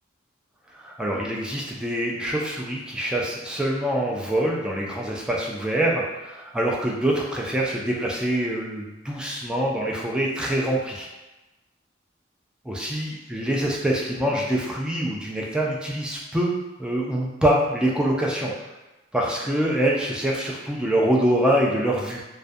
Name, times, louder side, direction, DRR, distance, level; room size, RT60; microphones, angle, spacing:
voice 1, 0.7-11.1 12.6-18.5 19.1-22.2, right 1 dB, 5° right, -3 dB, 0.3 m, -25 dB
2.3 x 2.1 x 2.5 m, 1.0 s
head